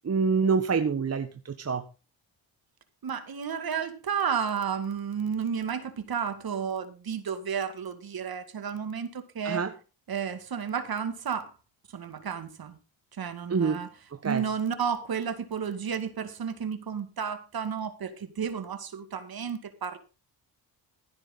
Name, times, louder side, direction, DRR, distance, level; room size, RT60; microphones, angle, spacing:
voice 1, 0.0-1.8 9.4-9.7 13.5-13.9 14.2-14.4, right 5 dB, 35° right, 8 dB, 1.2 m, -26 dB
voice 2, 3.0-9.6 10.1-11.5 11.9-12.8 13.1-13.9 14.2-20.0, right 7 dB, 50° right, 10 dB, 2.2 m, -32 dB
16.0 x 9.6 x 4.0 m, 0.32 s
cardioid pair, 90°, 45 cm